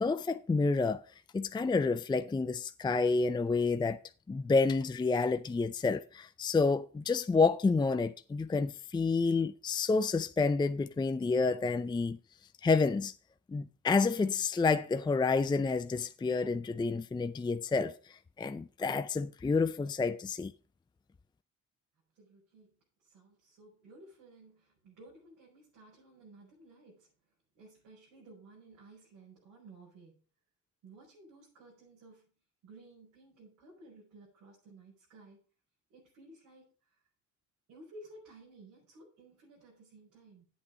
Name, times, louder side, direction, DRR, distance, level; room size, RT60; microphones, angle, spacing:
voice 1, 0.0-1.0 1.3-4.0 4.3-12.2 12.6-13.1 13.5-20.5, left 4 dB, 15° left, 0.4 m, -29 dB
voice 2, 22.1-27.1 27.5-30.2 30.8-32.3 32.6-35.4 35.9-37.0 37.7-40.5, right 2 dB, 85° right, 5.2 m, -56 dB
8.8 x 8.3 x 5.1 m
cardioid pair, 90°, 30 cm